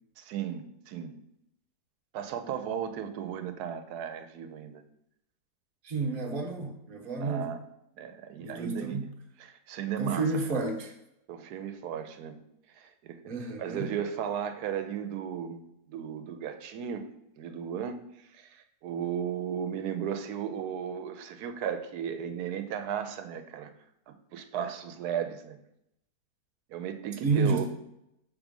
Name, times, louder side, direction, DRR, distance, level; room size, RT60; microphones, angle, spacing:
voice 1, 0.2-1.2 2.1-4.8 7.2-7.6 8.0-9.1 9.4-10.3 11.3-12.4 12.7-13.3 13.6-15.6 15.9-17.0 17.4-18.0 18.3-23.7 24.1-25.6 26.7-27.6, right 8 dB, 85° right, 9 dB, 1.2 m, -35 dB
voice 2, 5.8-7.5 8.4-9.1 10.0-10.9 13.3-13.9 27.2-27.6, right 3 dB, 40° right, 1 dB, 1.1 m, -30 dB
6.0 x 3.8 x 5.2 m, 0.82 s
omnidirectional pair, 1.6 m